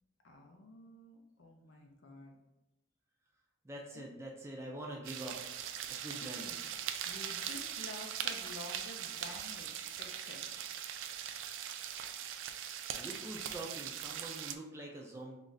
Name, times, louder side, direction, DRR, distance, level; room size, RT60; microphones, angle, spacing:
voice 1, 0.2-2.4 3.9-4.1 6.2-6.6 7.0-10.5, left 2 dB, 85° left, 3 dB, 0.5 m, -50 dB
voice 2, 3.6-6.7 13.0-15.4, right 1 dB, 15° right, -1 dB, 0.3 m, -45 dB
sound 1, 5.0-14.6, right 9 dB, 90° right, 0.3 m, -41 dB
3.1 x 2.5 x 3.9 m, 0.94 s
head